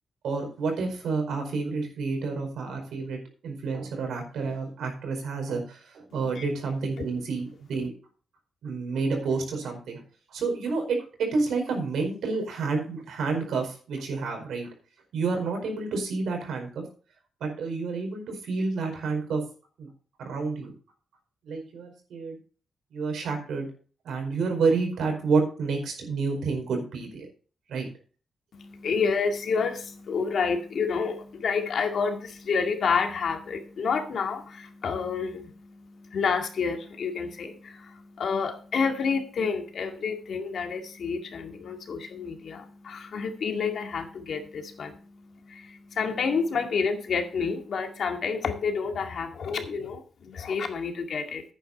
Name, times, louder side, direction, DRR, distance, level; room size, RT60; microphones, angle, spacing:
voice 1, 0.2-7.9 8.6-10.0 10.3-14.7 15.1-16.8 17.4-19.4 19.8-19.9 20.2-20.7 21.4-22.4 22.9-23.7 24.0-27.3 27.7-27.9, right 4 dB, 90° right, 3 dB, 4.7 m, -29 dB
voice 2, 28.5-51.4, left 5 dB, 60° left, 5 dB, 2.1 m, -29 dB
10.5 x 9.3 x 4.2 m, 0.39 s
cardioid pair, 120°, 0 cm